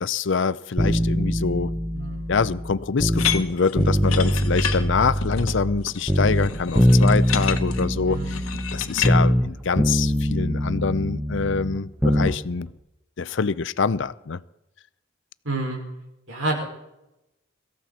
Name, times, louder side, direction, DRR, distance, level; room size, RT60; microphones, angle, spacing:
voice 1, 0.0-1.7 2.3-8.4 8.7-12.7 13.2-14.4, left 5 dB, 60° left, 0.5 m, -25 dB
sound 1, 0.8-3.4 3.8-5.8 6.1-9.5 9.8-12.4 12.7-12.8, equal, 5° right, 0.9 m, -22 dB
voice 2, 1.9-2.3 8.1-8.4 15.4-15.8 16.3-16.6, right 2 dB, 70° right, 5.4 m, -28 dB
sound 2, 3.1-9.1, left 8 dB, 90° left, 1.2 m, -30 dB
23.5 x 14.5 x 4.2 m
head